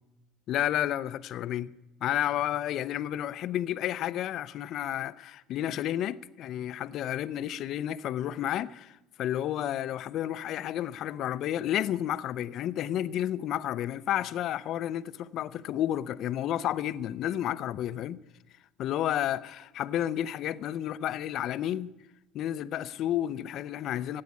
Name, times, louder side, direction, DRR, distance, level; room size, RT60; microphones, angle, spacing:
voice 1, 0.5-1.7 2.0-18.2 18.8-21.9 22.3-24.2, left 12 dB, 60° left, 0.6 m, -31 dB
16.0 x 8.6 x 8.3 m
supercardioid pair, 110°, 0 cm